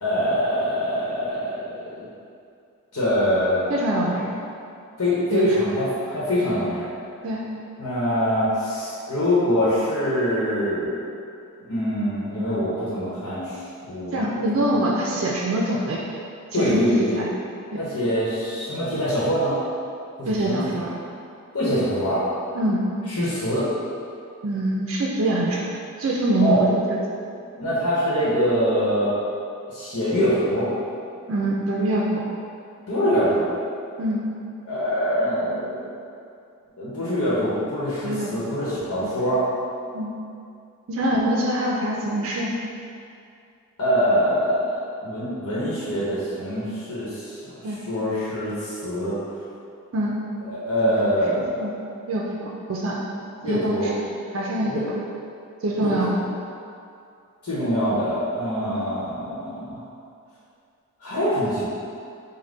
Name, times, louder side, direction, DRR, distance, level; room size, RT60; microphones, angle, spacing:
voice 1, 0.0-1.9 2.9-3.7 5.0-6.8 7.8-11.0 11.6-14.1 16.5-17.2 17.8-19.5 20.2-20.6 21.5-22.2 23.1-23.7 26.4-26.6 27.6-29.1 29.7-30.7 32.9-33.5 34.7-35.9 36.8-39.4 41.0-41.3 43.8-44.7 45.0-47.4 47.9-49.2 50.5-51.5 53.4-53.9 54.7-54.8 55.8-55.9 57.4-59.8 61.0-61.7, equal, 85° left, -9 dB, 1.0 m, -24 dB
voice 2, 3.7-4.3 5.3-5.5 7.2-7.4 14.1-16.0 16.5-17.3 17.7-17.9 20.3-20.9 22.5-22.9 24.4-25.7 26.0-26.8 31.3-32.2 34.0-34.2 38.0-38.3 39.9-40.1 40.9-42.5 47.6-47.8 49.9-50.2 51.6-51.7 52.1-53.0 53.4-54.0 54.3-54.9 55.6-56.2, right 1 dB, 65° right, -3 dB, 0.4 m, -24 dB
5.3 x 2.2 x 3.8 m, 2.5 s
head